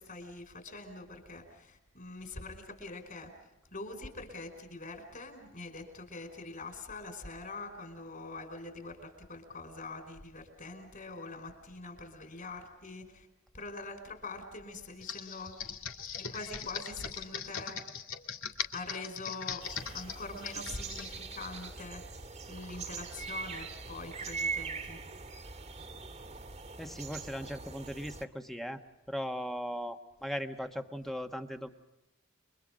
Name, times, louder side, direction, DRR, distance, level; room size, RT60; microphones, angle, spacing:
voice 1, 0.0-3.3 3.7-13.3 13.5-15.6 16.1-17.8 18.6-22.1 22.5-25.1, left 3 dB, 45° left, 6 dB, 5.2 m, -44 dB
Computer keyboard, 15.0-21.1, left 7 dB, 75° left, 2.2 m, -40 dB
sound 1, 19.6-28.2, right 5 dB, 35° right, 1.7 m, -42 dB
voice 2, 26.8-28.8 29.1-31.7, equal, ahead, 6 dB, 1.3 m, -38 dB
30.0 x 24.0 x 5.2 m, 0.93 s
head